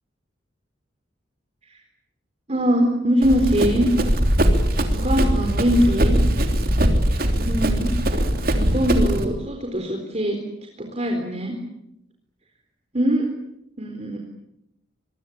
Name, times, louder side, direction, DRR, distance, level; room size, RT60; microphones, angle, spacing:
voice 1, 2.5-3.9 4.9-6.2 7.4-7.9 8.6-10.4 10.9-11.5 12.9-13.3 13.8-14.2, equal, 35° right, 2 dB, 4.0 m, -22 dB
Run, 3.2-9.2, equal, 50° right, 3.4 m, -21 dB
26.0 x 22.5 x 8.6 m, 0.81 s
head